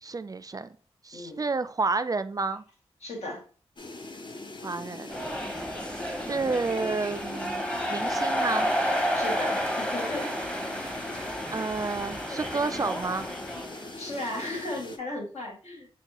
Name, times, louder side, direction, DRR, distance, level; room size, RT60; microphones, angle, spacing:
voice 1, 0.0-0.8 1.0-2.6 4.6-5.2 6.2-8.7 11.5-13.3, right 4 dB, 35° right, 12 dB, 0.3 m, -30 dB
voice 2, 1.1-1.4 3.0-3.4 9.1-10.3 13.6-15.9, left 1 dB, 75° left, -1 dB, 1.7 m, -36 dB
sound 1, 3.8-15.0, left 2 dB, 45° left, 0.7 m, -41 dB
sound 2, 5.1-13.9, equal, 10° left, 0.9 m, -31 dB
6.0 x 2.2 x 2.9 m, 0.39 s
cardioid pair, 45°, 11 cm